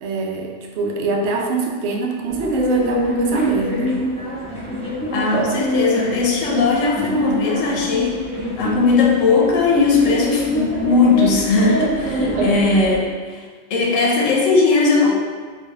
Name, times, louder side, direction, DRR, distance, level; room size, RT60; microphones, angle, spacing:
voice 1, 0.0-4.0 12.0-12.6, right 4 dB, 70° right, 0 dB, 0.8 m, -24 dB
sound 1, 2.3-13.0, equal, 5° left, 0.8 m, -25 dB
voice 2, 5.1-8.2 8.6-13.4 13.7-15.1, left 4 dB, 90° left, -1 dB, 1.0 m, -18 dB
3.3 x 2.6 x 3.3 m, 1.5 s
omnidirectional pair, 1.3 m